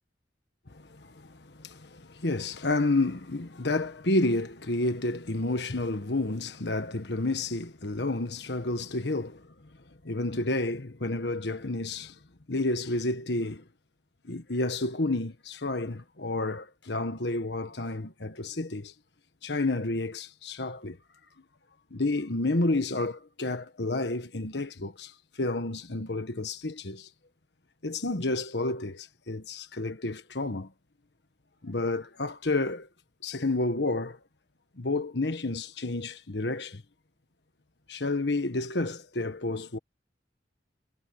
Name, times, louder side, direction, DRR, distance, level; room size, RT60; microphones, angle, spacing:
voice 1, 0.7-9.5 10.0-12.1 12.5-13.6 14.2-18.9 19.4-21.0 21.9-27.1 27.8-30.7 31.6-32.9 33.2-34.2 34.8-36.8 37.9-39.8, left 2 dB, 75° left, 1.4 m, -30 dB
head